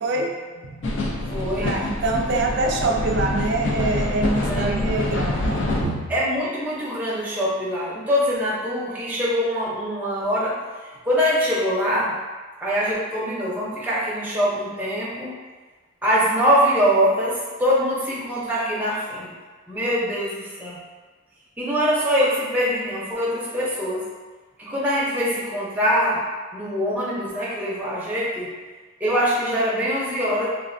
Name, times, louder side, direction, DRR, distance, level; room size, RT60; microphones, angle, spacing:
voice 1, 0.0-1.2 1.6-6.1, right 2 dB, 55° right, 2 dB, 0.3 m, -25 dB
sound 1, 0.8-5.8, left 2 dB, 60° left, 0.4 m, -26 dB
voice 2, 1.3-1.7 4.5-4.9 6.1-10.6 11.0-12.1 12.6-15.3 16.0-19.3 19.7-20.8 21.6-24.0 24.6-26.2 26.5-28.5 29.0-30.4, equal, 10° right, -8 dB, 0.6 m, -23 dB
3.2 x 2.4 x 2.5 m, 1.4 s
head